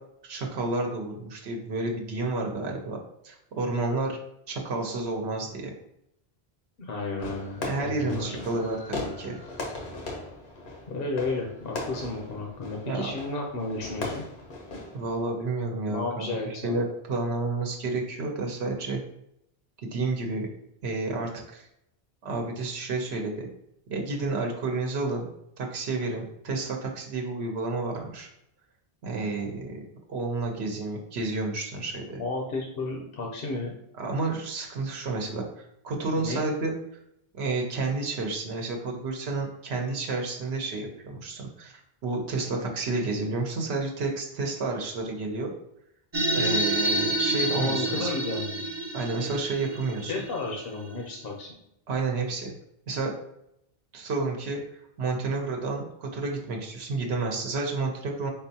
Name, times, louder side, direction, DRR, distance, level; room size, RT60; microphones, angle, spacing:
voice 1, 0.2-3.0 3.2-4.2 4.5-5.7 7.6-9.4 12.9-13.1 14.9-19.0 19.9-20.5 20.8-21.7 22.2-23.5 23.9-25.3 25.6-28.3 29.0-29.8 30.1-32.2 34.0-36.7 37.3-45.5 46.3-48.1 48.9-50.1 51.9-52.5 52.9-53.1 53.9-54.6 55.0-58.3, right 3 dB, 85° right, 1 dB, 1.0 m, -30 dB
voice 2, 6.8-8.4 10.9-14.2 15.9-16.8 32.2-33.7 36.2-36.4 47.5-48.6 50.1-51.5, left 3 dB, 65° left, 0 dB, 0.9 m, -32 dB
Fireworks, 7.2-15.3, left 2 dB, 85° left, 1.3 m, -38 dB
sound 1, 46.1-51.0, right 2 dB, 45° right, 0.3 m, -28 dB
4.4 x 3.8 x 2.8 m, 0.78 s
omnidirectional pair, 1.1 m